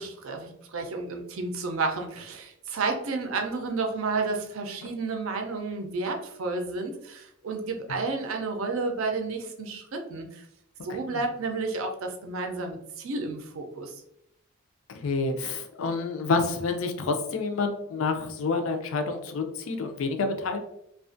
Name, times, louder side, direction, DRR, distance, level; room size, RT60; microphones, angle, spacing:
voice 1, 0.0-10.5 10.8-13.9, right 3 dB, 70° right, 3 dB, 0.5 m, -31 dB
voice 2, 10.9-11.2 14.9-20.6, left 4 dB, 70° left, 5 dB, 0.4 m, -28 dB
2.4 x 2.3 x 2.5 m, 0.76 s
head